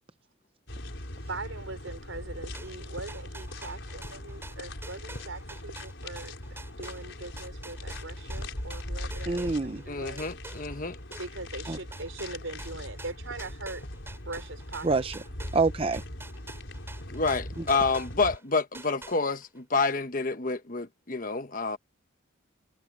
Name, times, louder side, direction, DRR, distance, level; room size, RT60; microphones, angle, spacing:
sound 1, 0.7-18.4, left 1 dB, 65° left, 5.1 m, -40 dB
voice 1, 1.3-10.2 11.2-13.8 14.2-14.9, right 3 dB, 80° right, 4.7 m, -41 dB
sound 2, 2.5-9.9 10.2-18.4 18.7-19.6, right 2 dB, 10° right, 7.7 m, -47 dB
voice 2, 9.3-9.8 11.7-11.8 14.8-15.2 15.5-16.0, right 3 dB, 30° right, 0.6 m, -26 dB
voice 3, 9.9-11.0 17.1-21.8, left 4 dB, 40° left, 1.1 m, -28 dB
head